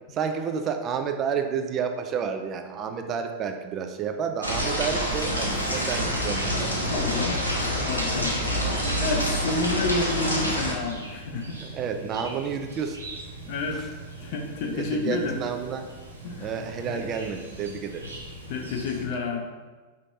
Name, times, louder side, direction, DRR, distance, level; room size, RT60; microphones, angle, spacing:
voice 1, 0.1-7.2 8.2-8.5 11.6-13.0 13.7-13.9 14.6-15.9 16.4-18.0, right 6 dB, 30° right, 6 dB, 0.4 m, -30 dB
sound 1, 4.4-10.7, equal, 85° left, 0.7 m, -27 dB
Chirp tweet, 5.1-19.0, right 2 dB, 80° right, 0.7 m, -41 dB
voice 2, 6.8-7.4 7.8-8.4 9.0-11.6 13.5-13.9 14.2-15.4 16.2-17.0 18.5-19.5, left 3 dB, 50° left, 2 dB, 0.6 m, -29 dB
5.1 x 3.1 x 2.6 m, 1.3 s
figure-of-eight pair, 90°, 0 cm